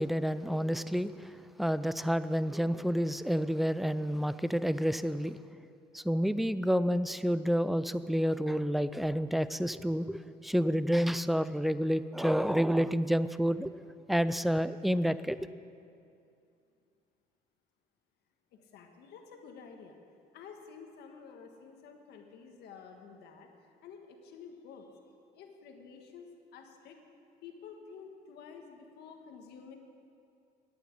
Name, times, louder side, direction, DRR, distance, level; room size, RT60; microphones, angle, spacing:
voice 1, 0.0-1.3 1.6-5.4 5.9-13.7 14.1-15.4, equal, ahead, 14 dB, 0.3 m, -29 dB
voice 2, 18.5-20.0 20.3-25.0 25.3-27.0 27.4-29.8, left 6 dB, 75° left, 3 dB, 1.6 m, -50 dB
10.5 x 9.2 x 8.6 m, 2.5 s
cardioid pair, 110°, 17 cm